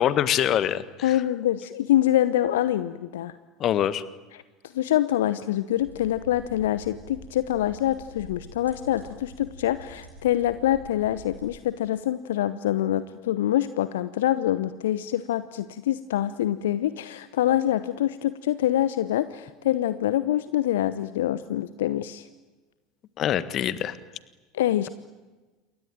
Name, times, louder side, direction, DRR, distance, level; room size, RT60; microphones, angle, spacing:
voice 1, 0.0-1.2 3.6-4.0 23.2-24.0, left 10 dB, 40° left, 15 dB, 1.6 m, -24 dB
voice 2, 1.0-3.3 4.7-22.3 24.5-24.9, left 12 dB, 65° left, 15 dB, 0.9 m, -25 dB
sound 1, 5.7-11.5, equal, 90° right, 6.6 m, -47 dB
28.5 x 23.0 x 9.3 m, 1.2 s
figure-of-eight pair, 75°, 0 cm